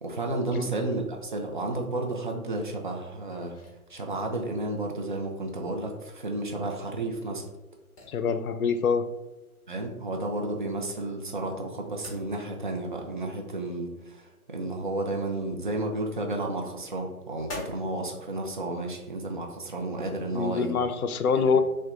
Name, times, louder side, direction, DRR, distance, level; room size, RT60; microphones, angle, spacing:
voice 1, 0.0-3.5 3.9-7.4 9.7-20.8 21.3-21.5, right 2 dB, 35° right, 1 dB, 0.4 m, -32 dB
sound 1, 3.1-18.1, left 2 dB, 25° left, 1.1 m, -50 dB
voice 2, 8.1-9.1 20.3-21.6, left 5 dB, 75° left, 10 dB, 0.5 m, -25 dB
5.7 x 2.2 x 2.4 m, 1.0 s
figure-of-eight pair, 145°, 44 cm